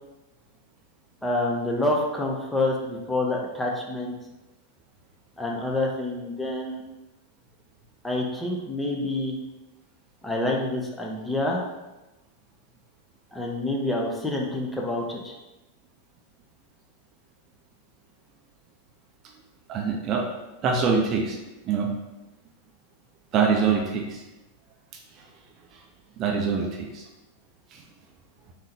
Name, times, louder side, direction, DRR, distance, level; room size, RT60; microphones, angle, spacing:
voice 1, 1.2-4.1 5.4-6.8 8.0-9.4 10.2-11.6 13.3-15.3, left 2 dB, 5° left, -1 dB, 0.6 m, -27 dB
voice 2, 19.7-20.2 20.6-21.4 21.7-21.9 23.3-24.2 26.2-27.0 27.7-27.8, right 5 dB, 35° right, 1 dB, 0.4 m, -24 dB
3.6 x 2.6 x 3.4 m, 1.0 s
figure-of-eight pair, 90°, 0 cm